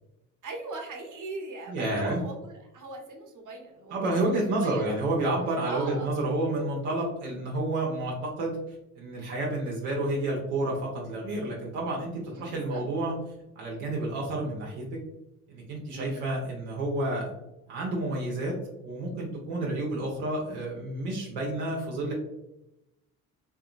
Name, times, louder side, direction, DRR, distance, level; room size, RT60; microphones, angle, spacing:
voice 1, 0.4-4.8 5.6-6.1 12.3-12.8 15.9-16.2, right 3 dB, 45° right, 1 dB, 1.1 m, -40 dB
voice 2, 1.7-2.2 3.9-13.1 13.6-15.0 15.5-17.3 17.7-22.1, right 2 dB, 70° right, -3 dB, 0.9 m, -30 dB
3.7 x 2.8 x 2.4 m, 0.88 s
figure-of-eight pair, 45°, 45 cm